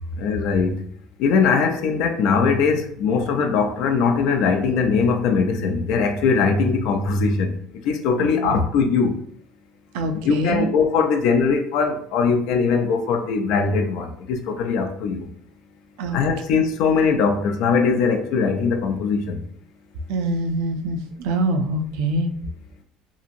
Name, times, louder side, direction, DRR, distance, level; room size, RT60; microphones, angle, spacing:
voice 1, 0.2-0.8 1.2-7.5 7.8-9.2 10.2-15.3 16.1-19.4, left 5 dB, 65° left, 0.4 m, -21 dB
voice 2, 8.2-8.6 9.9-10.7 16.0-16.2 20.1-22.3, right 1 dB, 80° right, 0.4 m, -24 dB
2.8 x 2.6 x 2.5 m
cardioid pair, 155°, 0 cm